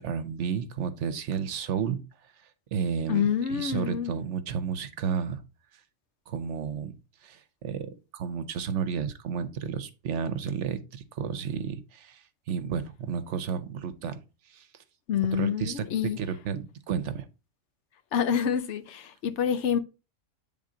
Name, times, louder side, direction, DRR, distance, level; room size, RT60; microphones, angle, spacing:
voice 1, 0.0-2.0 2.7-5.4 6.3-7.0 7.2-7.9 8.1-14.2 14.5-14.7 15.3-17.3, right 7 dB, 70° right, 1.0 m, -32 dB
voice 2, 3.1-4.1 15.1-16.2 18.1-19.8, left 8 dB, 70° left, 0.9 m, -27 dB
8.8 x 3.6 x 3.8 m
omnidirectional pair, 1.3 m